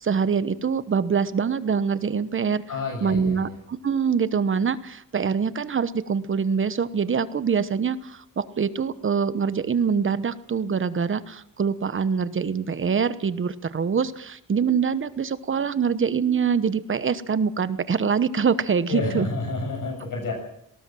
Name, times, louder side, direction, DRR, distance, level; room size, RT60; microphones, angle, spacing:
voice 1, 0.0-2.6 3.0-19.3, right 6 dB, 35° right, 14 dB, 1.1 m, -24 dB
voice 2, 2.7-3.6 18.9-20.3, left 3 dB, 70° left, 2 dB, 7.0 m, -29 dB
19.0 x 19.0 x 7.7 m, 0.73 s
wide cardioid pair, 155°, 33 cm